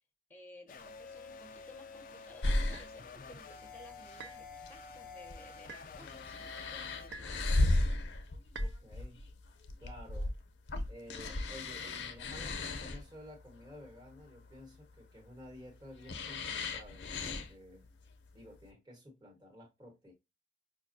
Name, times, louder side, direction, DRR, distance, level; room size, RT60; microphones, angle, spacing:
voice 1, 0.3-7.4, left 1 dB, 10° left, 0.7 m, -57 dB
sound 1, 0.7-7.1, left 4 dB, 50° left, 0.3 m, -49 dB
sound 2, 2.4-18.7, left 2 dB, 85° left, 0.6 m, -36 dB
sound 3, 2.7-2.9 4.2-4.5 5.7-5.9 7.1-7.4 8.5-8.8, right 4 dB, 70° right, 0.4 m, -48 dB
voice 2, 8.6-9.3 9.8-10.3 10.9-17.9 18.3-20.1, left 1 dB, 25° right, 1.2 m, -53 dB
5.0 x 2.3 x 2.6 m
head